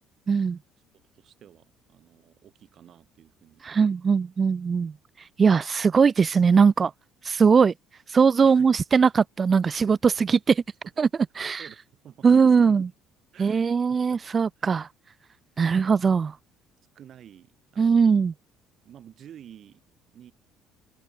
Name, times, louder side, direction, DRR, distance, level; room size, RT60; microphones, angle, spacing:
voice 1, 0.3-0.6 3.6-4.9 5.4-6.9 7.2-7.7 8.1-10.6 11.0-11.1 11.4-11.6 12.2-12.9 13.4-14.9 15.6-16.3 17.8-18.3, right 5 dB, 35° right, 1.2 m, -20 dB
voice 2, 0.9-3.8 8.4-8.8 9.6-10.0 11.3-12.4 12.7-12.8 13.3-14.2 14.6-14.8 16.0-16.3 16.9-18.3 18.8-19.8 20.1-20.3, right 10 dB, 50° right, 7.9 m, -51 dB
figure-of-eight pair, 55°, 0 cm